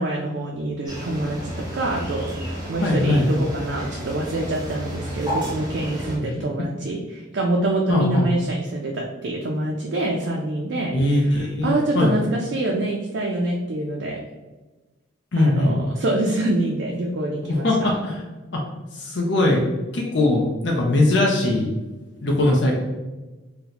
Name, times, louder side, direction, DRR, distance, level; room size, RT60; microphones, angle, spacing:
voice 1, 0.0-10.9 11.6-14.2 15.4-17.9, right 1 dB, 60° right, -1 dB, 0.4 m, -26 dB
sound 1, 0.9-6.2, equal, 20° right, 0.7 m, -32 dB
voice 2, 2.8-3.3 6.2-6.5 7.9-8.3 10.9-12.1 15.3-15.8 17.6-18.2 18.5-18.6 18.9-19.6 19.9-21.7 22.2-22.7, left 1 dB, 60° left, -1 dB, 0.5 m, -20 dB
2.8 x 2.1 x 3.9 m, 1.2 s
head